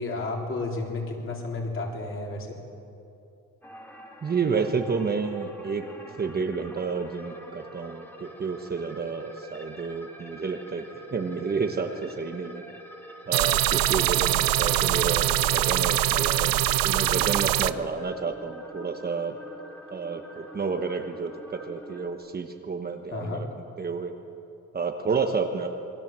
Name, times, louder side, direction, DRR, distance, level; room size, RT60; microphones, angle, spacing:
voice 1, 0.0-2.6 23.1-23.4, left 2 dB, 35° left, 0 dB, 4.0 m, -32 dB
sound 1, 3.6-22.1, equal, 5° left, 1.9 m, -46 dB
voice 2, 4.2-5.8 6.2-10.8 11.1-12.6 13.3-19.4 19.9-23.5 23.8-24.1 24.7-25.7, right 5 dB, 25° right, 4 dB, 1.2 m, -30 dB
sound 2, 13.3-17.7, right 13 dB, 70° right, 0.8 m, -23 dB
28.0 x 22.5 x 7.6 m, 2.8 s
cardioid pair, 170°, 35 cm